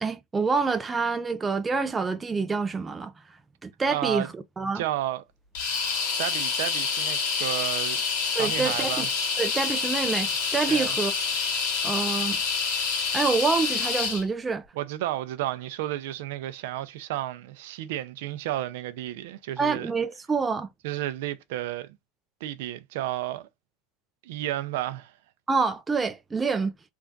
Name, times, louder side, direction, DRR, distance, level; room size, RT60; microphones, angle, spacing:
voice 1, 0.0-3.1 3.6-4.3 4.6-4.8 8.4-9.1 9.4-11.1 11.8-12.4 13.1-14.7 19.6-20.7 25.5-26.7, right 4 dB, 10° right, 0.4 m, -27 dB
voice 2, 3.9-4.3 4.7-5.2 6.2-8.0 8.3-9.1 10.7-10.9 14.7-19.9 20.8-21.9 22.4-23.5 24.2-25.1, right 13 dB, 70° right, 0.5 m, -32 dB
sound 1, 5.5-14.2, left 5 dB, 60° left, 2.0 m, -27 dB
3.4 x 2.4 x 3.8 m
supercardioid pair, 160°, 0 cm